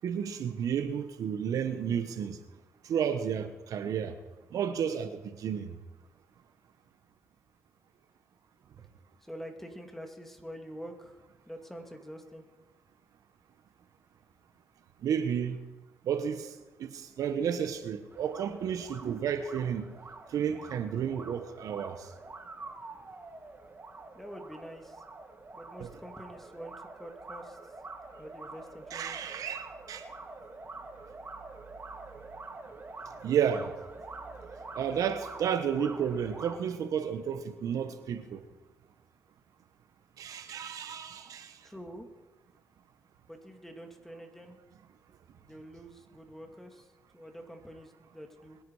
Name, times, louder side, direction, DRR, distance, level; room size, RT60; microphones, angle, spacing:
voice 1, 0.0-2.4 2.8-4.2 4.5-5.7 15.0-15.6 16.1-16.5 16.8-19.9 20.3-22.1 25.8-25.9 28.9-30.0 33.2-33.7 34.7-38.4 40.2-41.6, right 8 dB, 75° right, 1.0 m, -32 dB
voice 2, 9.2-12.4 24.1-25.0 25.5-27.6 28.2-29.2 41.6-42.1 43.3-44.6 45.4-48.6, equal, 5° left, 2.4 m, -46 dB
sound 1, 18.1-36.6, right 3 dB, 35° right, 2.2 m, -46 dB
21.5 x 10.0 x 4.9 m
cardioid pair, 80°, 6 cm